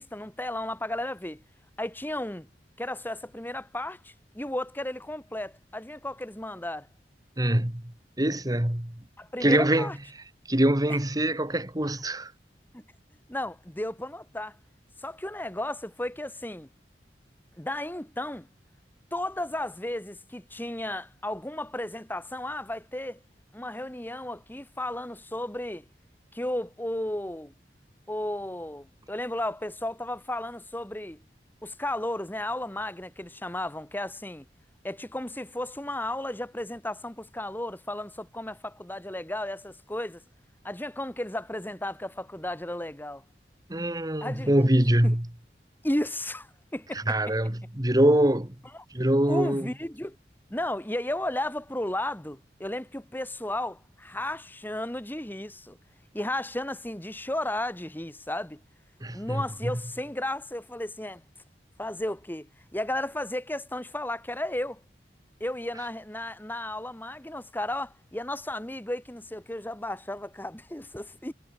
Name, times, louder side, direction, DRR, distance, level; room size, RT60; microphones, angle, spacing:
voice 1, 0.0-1.4 1.8-2.5 2.8-6.9 9.2-10.0 10.9-11.0 12.7-12.8 13.3-14.6 15.0-16.7 17.6-18.5 19.1-23.2 23.5-25.8 26.3-27.5 28.1-31.2 31.6-34.4 34.8-40.2 40.6-43.2 44.2-44.7 45.0-45.2 45.8-47.1 49.3-50.2 50.5-55.8 56.1-58.6 59.1-61.2 61.8-64.8 65.4-71.3, left 1 dB, 10° left, 2.1 m, -34 dB
voice 2, 7.4-8.9 9.4-9.9 10.5-12.3 43.7-45.3 46.9-48.6 48.9-49.7 59.0-59.7, right 1 dB, 20° right, 1.9 m, -24 dB
head